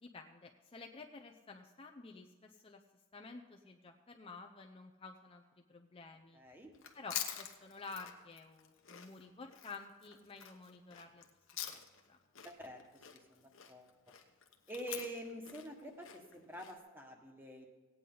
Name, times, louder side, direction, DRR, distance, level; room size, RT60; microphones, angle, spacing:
voice 1, 0.0-2.8 3.1-5.4 5.7-6.4 6.9-11.2 11.6-11.8 12.1-12.2, left 4 dB, 30° left, 3 dB, 0.6 m, -51 dB
voice 2, 6.3-6.7 12.4-13.9 14.7-17.7, right 1 dB, 10° right, 2 dB, 1.5 m, -47 dB
Chewing mastication, 6.7-12.1 12.3-16.7, left 10 dB, 70° left, 1.0 m, -47 dB
16.5 x 9.3 x 3.9 m, 1.3 s
head